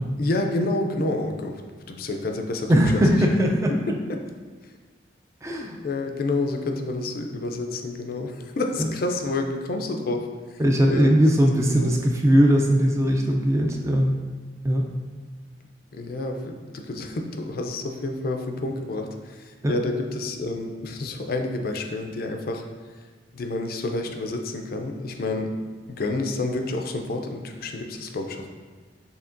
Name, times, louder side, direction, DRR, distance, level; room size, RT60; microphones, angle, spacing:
voice 1, 0.2-1.6 1.9-2.7 5.8-10.6 10.9-11.3 11.8-12.0 15.9-22.6 23.3-25.5 25.9-28.5, left 2 dB, 55° left, 4 dB, 0.4 m, -29 dB
voice 2, 2.7-3.7 5.4-5.8 8.8-8.9 10.6-14.2 14.6-14.9 19.6-19.7, equal, 15° right, 1 dB, 0.3 m, -20 dB
6.9 x 2.8 x 2.5 m, 1.4 s
head